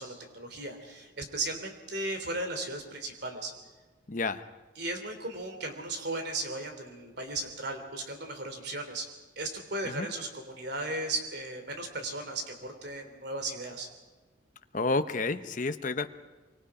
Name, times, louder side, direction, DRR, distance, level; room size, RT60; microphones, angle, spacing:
voice 1, 0.0-3.5 4.8-9.0 9.3-13.9, right 2 dB, 55° right, 5 dB, 3.4 m, -36 dB
voice 2, 4.1-4.5 9.8-10.1 14.7-16.1, left 3 dB, 40° left, 9 dB, 0.8 m, -30 dB
25.0 x 24.5 x 5.0 m, 1.3 s
head